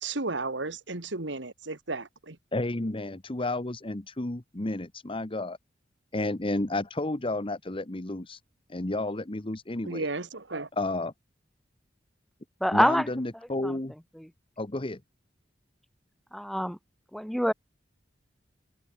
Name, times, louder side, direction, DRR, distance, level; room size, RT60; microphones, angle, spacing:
voice 1, 0.0-2.4 9.8-10.7, right 3 dB, 85° right, 2.1 m, -34 dB
voice 2, 2.5-5.6 6.1-8.4 8.7-10.1 10.8-11.1 12.7-13.9 14.6-15.0, left 2 dB, 30° left, 1.2 m, -31 dB
voice 3, 12.6-13.1 13.6-13.7 14.2-14.3 16.3-16.8 17.1-17.5, equal, ahead, 0.6 m, -25 dB
head